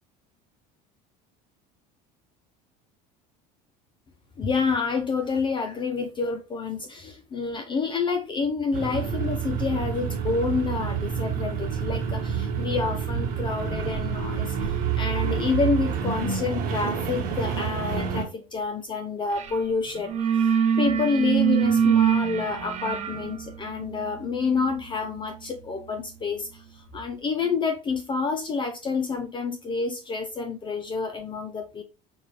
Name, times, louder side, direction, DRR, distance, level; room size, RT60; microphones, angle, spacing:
voice 1, 4.4-20.5 20.8-31.8, left 4 dB, 25° left, 0.5 m, -28 dB
sound 1, 8.7-18.2, right 7 dB, 55° right, 1.4 m, -28 dB
sound 2, 19.4-19.6 19.9-26.5, right 7 dB, 35° right, 0.8 m, -25 dB
5.3 x 2.5 x 3.2 m
supercardioid pair, 115°, 19 cm